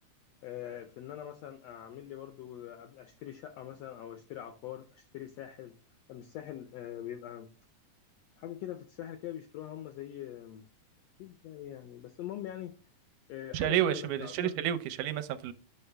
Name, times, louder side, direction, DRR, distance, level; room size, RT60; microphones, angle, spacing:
voice 1, 0.4-5.8 6.1-7.5 8.4-10.7 11.2-12.8 13.3-14.6, left 11 dB, 80° left, 1.5 m, -43 dB
voice 2, 13.5-15.5, right 11 dB, 80° right, 2.1 m, -30 dB
9.4 x 5.8 x 3.3 m
omnidirectional pair, 3.6 m